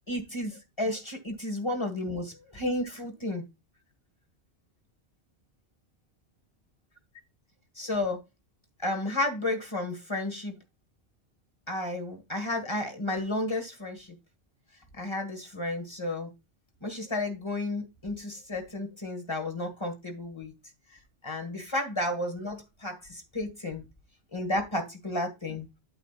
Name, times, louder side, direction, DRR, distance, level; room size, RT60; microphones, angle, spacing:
voice 1, 0.1-3.4 7.8-8.2 8.8-10.5 11.7-14.2 15.0-16.3 16.8-20.5 21.2-23.8 24.3-25.7, left 1 dB, 25° left, 1.8 m, -32 dB
8.9 x 7.4 x 2.5 m
omnidirectional pair, 1.2 m